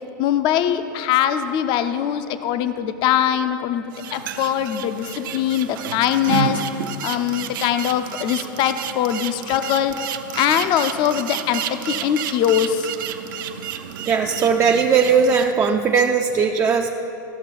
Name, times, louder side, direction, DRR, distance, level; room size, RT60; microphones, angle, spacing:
voice 1, 0.2-6.6 7.0-9.9 10.3-12.9, left 10 dB, 45° left, 10 dB, 0.5 m, -22 dB
sound 1, 3.9-15.5, right 8 dB, 75° right, 0.6 m, -31 dB
voice 2, 14.1-16.9, right 6 dB, 25° right, 3 dB, 0.4 m, -18 dB
14.0 x 6.1 x 5.2 m, 2.9 s
hypercardioid pair, 115°, 11 cm